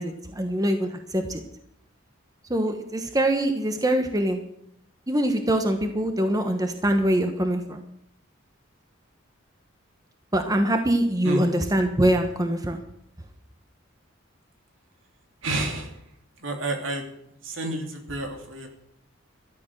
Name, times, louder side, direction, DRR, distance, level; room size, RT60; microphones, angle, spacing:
voice 1, 0.0-1.4 2.5-4.4 5.1-7.8 10.3-12.8, right 1 dB, 20° right, 6 dB, 1.2 m, -24 dB
voice 2, 15.4-16.0 16.4-17.0 17.4-18.7, right 2 dB, 70° right, 3 dB, 3.1 m, -30 dB
14.0 x 11.5 x 6.7 m, 0.75 s
head